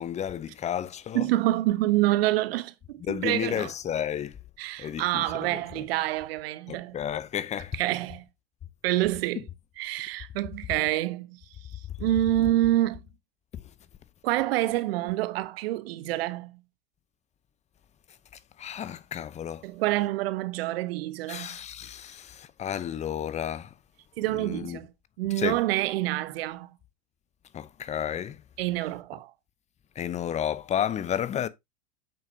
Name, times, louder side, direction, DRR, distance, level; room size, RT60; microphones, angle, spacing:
voice 1, 0.0-1.3 3.0-4.4 4.8-5.2 5.5-5.8 6.7-7.8 13.5-13.6 18.6-19.6 21.3-23.7 24.4-24.8 25.4-25.6 27.5-28.4 30.0-31.5, left 9 dB, 20° left, 0.7 m, -32 dB
voice 2, 1.1-3.7 4.6-7.0 7.7-8.2 8.8-9.4 9.8-11.4 12.0-13.0 14.2-16.6 19.6-21.5 24.2-24.9 25.2-26.7 28.6-29.3, right 15 dB, 55° right, 1.0 m, -27 dB
8.7 x 6.4 x 2.7 m
hypercardioid pair, 95°, 36 cm